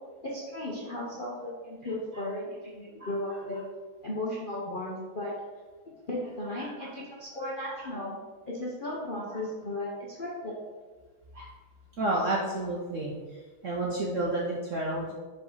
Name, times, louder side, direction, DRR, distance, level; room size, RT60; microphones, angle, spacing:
voice 1, 0.2-3.6 4.0-5.3 6.1-8.2 8.5-10.5, left 1 dB, 50° left, -5 dB, 0.6 m, -35 dB
voice 2, 6.6-6.9 7.8-7.9 9.3-9.4 11.3-11.5 12.0-13.1 13.6-15.1, right 2 dB, 60° right, -3 dB, 0.8 m, -31 dB
5.0 x 3.7 x 5.5 m, 1.4 s
omnidirectional pair, 2.2 m